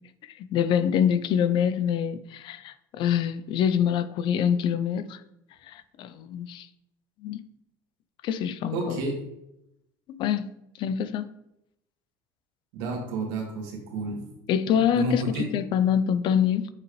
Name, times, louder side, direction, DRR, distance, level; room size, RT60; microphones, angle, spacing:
voice 1, 0.4-5.2 5.7-6.7 7.2-7.4 8.2-9.0 10.1-10.5 10.8-11.3 14.5-16.7, left 8 dB, 55° left, 0.5 m, -25 dB
voice 2, 8.7-9.1 12.7-14.2 14.7-15.5, right 3 dB, 80° right, 1.9 m, -30 dB
6.9 x 5.7 x 3.1 m
supercardioid pair, 110°, 10 cm